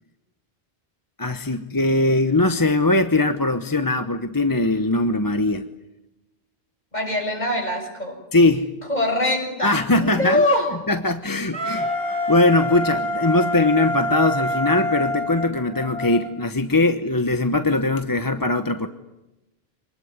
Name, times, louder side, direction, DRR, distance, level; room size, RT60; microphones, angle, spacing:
voice 1, 1.2-5.6 8.3-8.7 9.6-10.4 10.9-18.9, left 2 dB, 20° left, 9 dB, 1.0 m, -21 dB
voice 2, 6.9-8.2 8.9-10.7, left 1 dB, 45° left, 2 dB, 7.5 m, -23 dB
Wind instrument woodwind instrument, 11.5-16.3, left 1 dB, 65° right, 4.7 m, -26 dB
26.0 x 20.0 x 9.7 m, 1.0 s
omnidirectional pair, 1.0 m